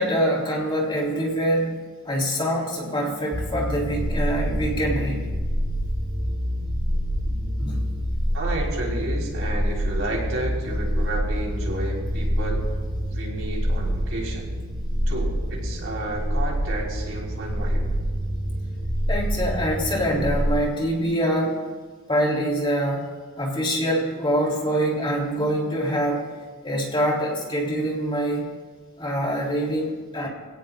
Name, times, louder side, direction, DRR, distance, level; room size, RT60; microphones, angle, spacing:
voice 1, 0.0-1.8 2.0-5.3 7.3-7.8 19.1-21.6 22.1-23.1 23.4-26.3 26.6-28.5 29.0-30.3, equal, 25° left, -2 dB, 3.2 m, -25 dB
sound 1, 3.3-20.5, equal, 45° right, 2.3 m, -26 dB
voice 2, 8.3-12.7 13.1-14.5 15.1-17.8, right 2 dB, 70° right, -2 dB, 4.3 m, -31 dB
26.0 x 17.0 x 2.5 m, 1.5 s
head